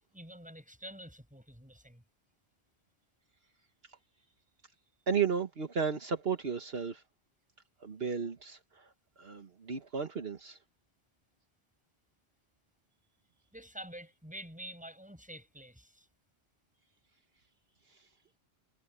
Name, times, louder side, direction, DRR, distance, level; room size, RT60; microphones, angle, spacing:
voice 1, 0.1-2.0 13.5-16.1, equal, 5° right, 6.6 m, -48 dB
voice 2, 5.1-7.0 7.8-10.6 17.9-18.1, right 6 dB, 65° right, 1.6 m, -34 dB
omnidirectional pair, 1.1 m